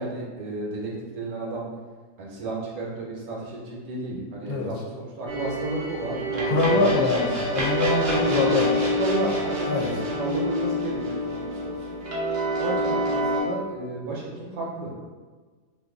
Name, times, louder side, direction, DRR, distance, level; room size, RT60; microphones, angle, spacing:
voice 1, 0.0-1.6 2.2-7.2 7.5-7.6 8.2-11.8 12.6-14.9, right 2 dB, 70° right, -3 dB, 1.0 m, -32 dB
sound 1, 5.3-13.4, equal, 90° right, 0.3 m, -27 dB
voice 2, 6.4-8.9 9.7-9.9, left 3 dB, 70° left, -2 dB, 1.0 m, -24 dB
2.5 x 2.5 x 3.6 m, 1.4 s
omnidirectional pair, 1.7 m